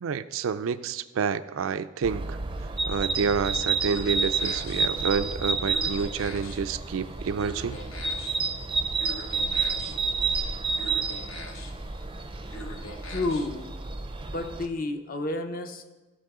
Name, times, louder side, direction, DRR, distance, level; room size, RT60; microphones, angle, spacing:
voice 1, 0.0-2.4 2.9-7.8, right 6 dB, 85° right, 13 dB, 0.4 m, -29 dB
sound 1, 2.0-14.7, right 4 dB, 25° right, 0.5 m, -30 dB
sound 2, 3.4-13.7, left 1 dB, 90° left, 1.0 m, -44 dB
voice 2, 13.1-13.9 14.2-15.9, left 2 dB, 45° left, 7 dB, 0.7 m, -31 dB
14.5 x 5.4 x 3.7 m, 1.2 s
head